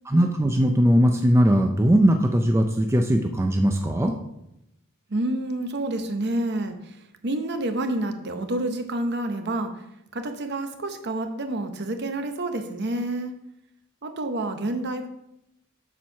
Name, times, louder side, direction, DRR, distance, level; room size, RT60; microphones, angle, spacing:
voice 1, 0.1-4.1, equal, 10° right, 4 dB, 0.4 m, -20 dB
voice 2, 5.1-9.8 10.1-13.4 14.0-15.1, right 1 dB, 50° right, 7 dB, 0.8 m, -28 dB
7.4 x 4.5 x 5.6 m, 0.84 s
head